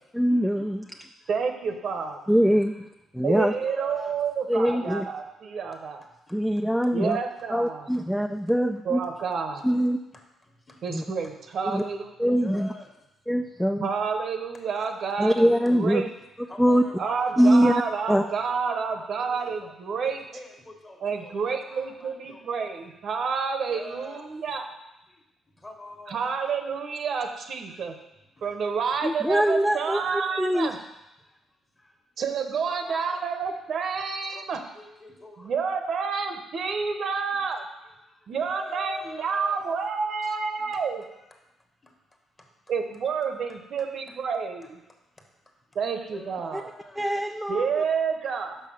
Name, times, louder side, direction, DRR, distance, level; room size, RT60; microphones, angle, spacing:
voice 1, 0.1-0.9 2.3-2.9 3.1-3.5 4.5-5.1 6.3-7.2 7.5-9.0 9.6-10.0 10.9-11.0 11.7-11.8 12.2-12.7 13.3-13.9 15.2-16.0 16.6-16.8 17.4-17.7 18.1-18.2 29.0-30.7 46.5-46.6 47.0-47.8, equal, ahead, 5 dB, 0.4 m, -23 dB
voice 2, 1.3-2.2 3.2-6.0 6.9-7.9 8.9-9.7 10.8-12.3 13.8-16.1 17.0-20.2 21.0-24.7 26.1-27.9 28.4-30.8 32.2-34.6 35.4-37.6 38.3-41.0 42.7-44.8 45.7-46.7 47.5-48.6, right 5 dB, 60° right, 5 dB, 0.9 m, -29 dB
voice 3, 3.6-4.1 12.3-12.9 16.5-17.6 17.9-18.4 18.8-19.7 20.0-22.4 23.7-24.2 25.6-26.2 29.4-30.7 32.7-33.2 34.3-35.3 38.3-39.6 46.1-47.0, left 1 dB, 25° left, 2 dB, 1.5 m, -44 dB
5.6 x 5.5 x 6.2 m, 0.92 s
cardioid pair, 90°, 0 cm